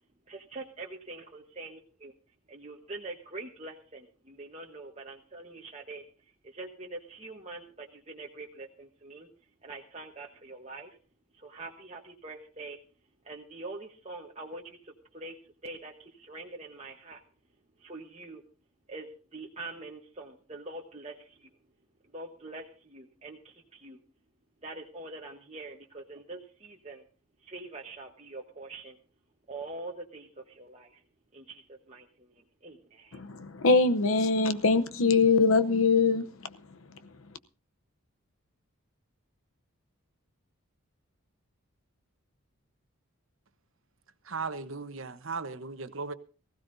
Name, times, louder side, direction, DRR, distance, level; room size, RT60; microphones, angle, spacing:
voice 1, 0.3-2.1 2.5-6.0 6.4-9.3 9.6-10.9 11.4-12.8 13.2-15.3 15.6-17.2 17.8-18.4 18.9-21.5 22.1-24.0 24.6-27.0 27.4-29.0 29.5-31.0 31.3-32.1 32.6-33.2, right 2 dB, 30° right, 1.2 m, -44 dB
voice 2, 33.1-36.5, left 4 dB, 70° left, 0.8 m, -23 dB
voice 3, 44.3-46.1, right 4 dB, 65° right, 1.0 m, -36 dB
20.0 x 15.5 x 2.7 m
head